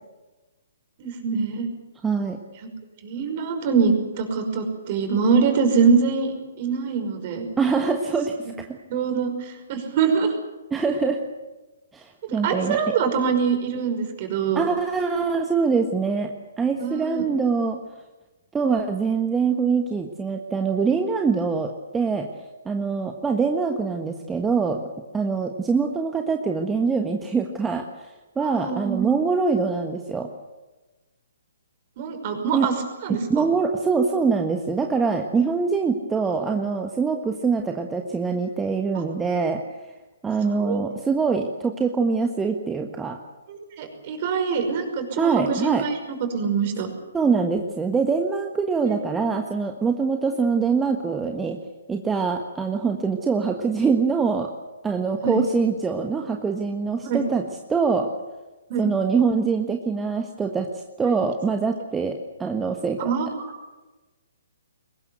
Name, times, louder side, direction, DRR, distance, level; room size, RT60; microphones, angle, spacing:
voice 1, 1.0-1.7 3.0-7.5 8.9-10.3 12.4-14.7 16.8-17.2 28.4-29.1 32.0-32.8 33.0-33.5 40.5-40.8 43.5-46.9 48.9-49.2 55.2-55.4 57.0-57.2 58.7-58.9 61.1-61.2 63.0-63.3, right 5 dB, 40° right, 5 dB, 5.6 m, -24 dB
voice 2, 2.0-2.4 7.6-8.4 8.7-8.8 10.7-11.2 11.9-12.9 14.5-17.8 18.5-22.3 22.6-24.9 25.1-30.3 32.5-32.7 33.1-39.6 40.2-43.2 45.2-45.8 47.1-51.6 51.9-54.5 54.8-58.1 58.8-60.7 61.0-63.1, right 5 dB, 10° right, 3 dB, 1.5 m, -24 dB
23.0 x 20.0 x 8.2 m, 1.2 s
figure-of-eight pair, 125°, 0 cm